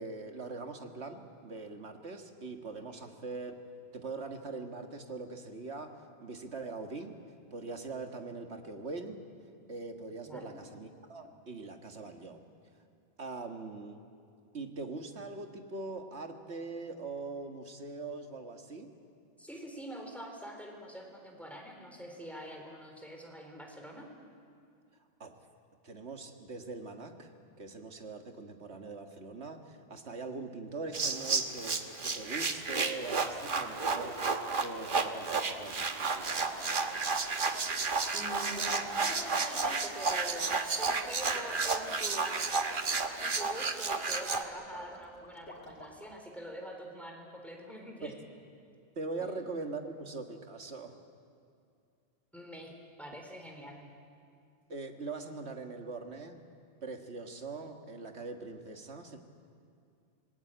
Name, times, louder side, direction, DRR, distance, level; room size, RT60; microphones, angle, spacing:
voice 1, 0.0-3.6 3.9-7.2 7.5-9.3 9.7-12.5 13.2-14.0 14.5-18.9 25.2-25.4 25.8-27.3 27.6-34.2 34.6-37.2 48.0-48.2 49.0-51.0 54.7-56.4 56.8-59.2, right 3 dB, 75° right, 5 dB, 2.1 m, -42 dB
voice 2, 10.3-10.6 19.4-24.1 38.1-42.5 43.2-48.1 49.2-49.3 52.3-53.9, equal, ahead, 1 dB, 3.9 m, -45 dB
sound 1, 30.9-44.4, right 4 dB, 50° right, 1.4 m, -32 dB
sound 2, 36.3-46.2, left 1 dB, 80° left, 3.7 m, -51 dB
26.5 x 20.0 x 9.0 m, 2.4 s
omnidirectional pair, 1.1 m